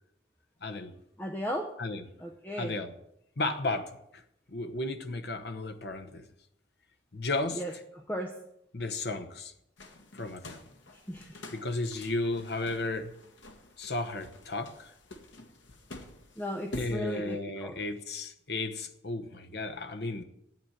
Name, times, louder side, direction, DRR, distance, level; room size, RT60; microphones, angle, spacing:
voice 1, 0.6-0.9 1.8-2.0 2.6-2.9 3.4-4.0 4.5-6.2 7.1-7.6 8.7-9.5 10.1-10.6 11.5-13.1 13.8-14.9 16.8-20.2, left 2 dB, 55° left, 8 dB, 1.0 m, -34 dB
voice 2, 1.2-1.7 2.2-2.7 7.5-8.3 11.1-11.4 16.4-17.8, equal, 10° left, 1 dB, 0.8 m, -36 dB
sound 1, 9.8-17.0, left 1 dB, 80° left, 1.6 m, -47 dB
9.2 x 8.0 x 8.8 m, 0.79 s
head